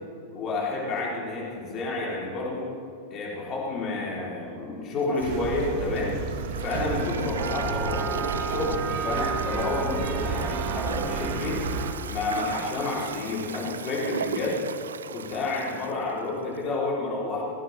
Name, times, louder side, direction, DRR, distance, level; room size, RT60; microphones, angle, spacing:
voice 1, 0.3-2.7 3.1-6.2 6.6-11.6 12.1-14.6 15.1-17.4, left 3 dB, 35° left, -4 dB, 3.3 m, -30 dB
Toilet flush, 5.0-16.8, right 7 dB, 65° right, 0.4 m, -38 dB
sound 1, 5.2-11.9, right 4 dB, 50° right, 1.2 m, -30 dB
18.5 x 15.5 x 3.3 m, 2.5 s
figure-of-eight pair, 90°, 0 cm